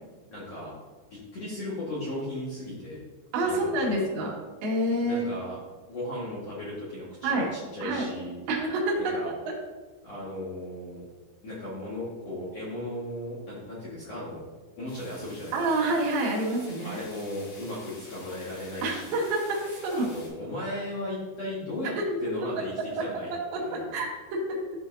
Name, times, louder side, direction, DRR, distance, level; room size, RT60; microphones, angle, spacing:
voice 1, 0.3-0.7 1.1-3.0 3.4-4.0 5.0-5.6 5.9-8.3 9.0-9.3 10.0-11.0 11.4-14.4 14.8-15.6 16.8-19.2 19.9-21.9 22.2-24.0, left 1 dB, 60° left, -8 dB, 1.7 m, -36 dB
voice 2, 3.3-4.3 4.6-5.3 7.2-7.5 7.8-8.1 8.5-9.2 9.4-9.5 15.5-17.0 18.8-20.0 23.5-24.6, right 2 dB, 60° right, -4 dB, 3.1 m, -27 dB
sound 1, 14.9-20.3, left 2 dB, 85° left, 5.0 m, -49 dB
13.0 x 5.5 x 2.7 m, 1.3 s
omnidirectional pair, 5.8 m